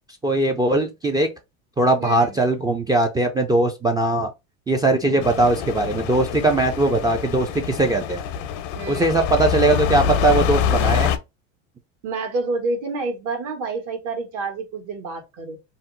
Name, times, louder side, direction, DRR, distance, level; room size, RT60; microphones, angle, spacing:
voice 1, 0.2-1.3 1.8-4.3 4.7-8.2 8.9-11.1, right 2 dB, 10° right, 0.3 m, -20 dB
voice 2, 2.0-2.4 5.0-5.4 8.8-9.1 12.0-15.6, right 3 dB, 55° right, 1.3 m, -29 dB
sound 1, 5.2-11.2, left 8 dB, 80° left, 0.6 m, -25 dB
2.7 x 2.0 x 3.7 m
supercardioid pair, 105°, 37 cm